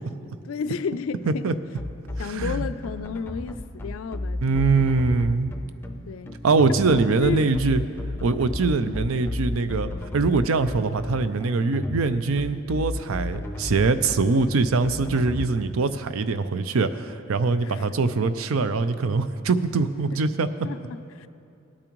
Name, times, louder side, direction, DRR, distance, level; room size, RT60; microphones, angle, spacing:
voice 1, 0.5-1.5 2.2-4.7 6.1-6.4 6.7-7.5 8.8-9.1 17.6-17.9 20.1-20.2 20.6-21.3, left 6 dB, 80° left, 0.4 m, -33 dB
sound 1, 1.8-15.5, left 2 dB, 10° left, 0.4 m, -32 dB
voice 2, 2.2-2.7 4.4-5.5 6.4-7.8 8.2-20.5, right 4 dB, 90° right, 0.5 m, -23 dB
18.5 x 8.7 x 3.1 m
head